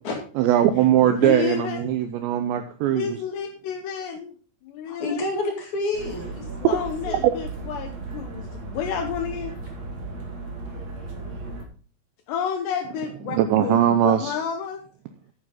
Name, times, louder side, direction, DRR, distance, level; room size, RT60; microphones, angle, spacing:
voice 1, 0.4-3.2 7.2-7.3 13.3-14.3, right 11 dB, 80° right, 9 dB, 2.6 m, -20 dB
voice 2, 1.0-1.9 2.9-4.3 4.6-5.3 6.7-9.6 12.3-14.8, left 7 dB, 75° left, 6 dB, 2.7 m, -30 dB
voice 3, 4.9-7.3, left 2 dB, 50° left, 1 dB, 2.8 m, -29 dB
sound 1, 5.9-11.6, right 3 dB, 45° right, 2.7 m, -35 dB
11.5 x 9.2 x 3.8 m, 0.40 s
omnidirectional pair, 5.8 m